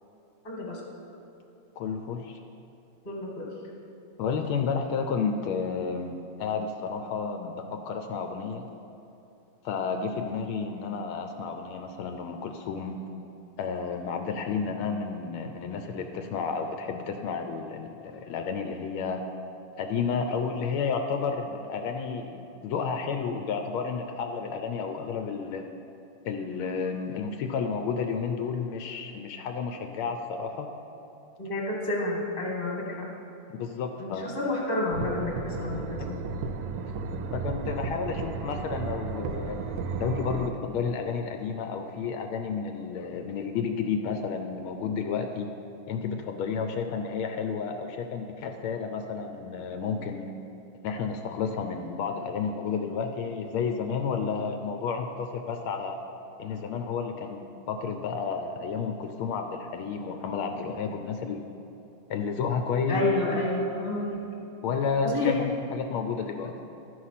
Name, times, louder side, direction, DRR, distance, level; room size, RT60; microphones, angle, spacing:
voice 1, 0.4-0.8 3.0-3.5 31.4-33.1 34.0-36.2 62.9-64.2 65.0-65.4, left 2 dB, 25° left, -2 dB, 1.6 m, -30 dB
voice 2, 1.8-2.4 4.2-8.6 9.6-13.0 13.6-19.2 19.8-25.6 26.2-30.7 33.6-34.3 37.3-39.6 40.0-45.5 45.9-50.3 50.8-56.0 56.4-61.4 62.1-63.4 64.6-66.6, left 5 dB, 80° left, 5 dB, 1.4 m, -31 dB
sound 1, 34.9-40.5, right 5 dB, 80° right, 1.4 m, -34 dB
12.5 x 4.8 x 5.7 m, 3.0 s
omnidirectional pair, 2.3 m